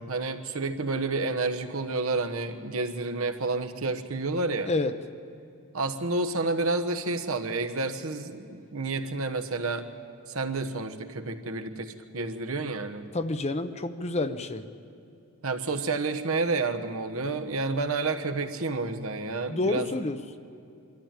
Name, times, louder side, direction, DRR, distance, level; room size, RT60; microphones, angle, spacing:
voice 1, 0.0-4.7 5.7-9.8 10.3-13.0 15.4-19.9, right 3 dB, 75° right, 6 dB, 1.2 m, -30 dB
voice 2, 4.7-5.0 13.1-14.6 19.5-20.4, left 2 dB, 30° left, 10 dB, 0.7 m, -29 dB
23.5 x 13.0 x 9.0 m, 2.6 s
head